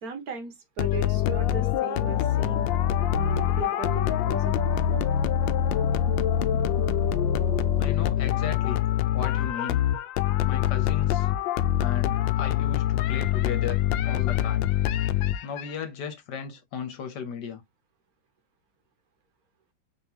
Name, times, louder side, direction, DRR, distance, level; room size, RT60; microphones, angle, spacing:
voice 1, 0.0-2.7 3.1-5.1, right 6 dB, 55° right, 1.5 m, -37 dB
sound 1, 0.8-15.7, left 10 dB, 90° left, 1.3 m, -25 dB
voice 2, 7.8-8.8 9.1-9.8 10.4-11.3 11.8-14.7 15.4-17.6, left 7 dB, 70° left, 1.4 m, -36 dB
4.7 x 3.7 x 2.8 m
omnidirectional pair, 2.0 m